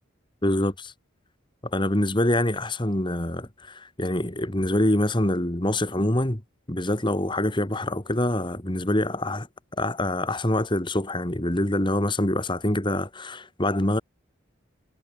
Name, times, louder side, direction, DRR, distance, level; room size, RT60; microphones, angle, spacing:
voice 1, 0.4-0.9 1.7-6.4 6.7-9.5 9.8-14.0, left 1 dB, 20° left, 2.0 m, -25 dB
head